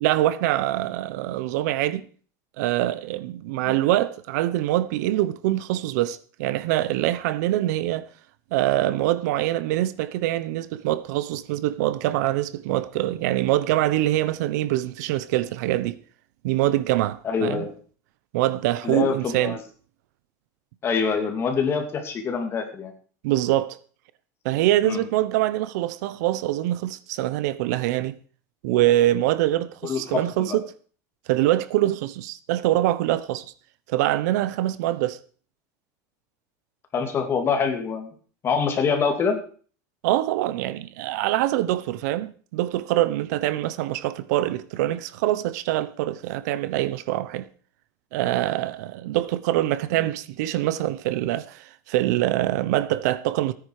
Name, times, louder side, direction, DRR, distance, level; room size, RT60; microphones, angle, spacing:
voice 1, 0.0-2.1 2.6-8.1 8.5-16.0 16.4-17.6 18.3-19.6 23.2-23.8 24.4-28.1 28.6-30.6 31.3-33.4 33.9-35.2 40.0-47.5 48.1-53.5, right 14 dB, 75° right, 1.0 m, -24 dB
voice 2, 17.2-17.7 18.8-19.6 20.8-22.9 24.8-25.0 29.8-30.6 36.9-38.1 38.4-39.4 49.9-50.1, left 5 dB, 25° left, 2.8 m, -25 dB
17.0 x 9.8 x 4.9 m
supercardioid pair, 150°, 9 cm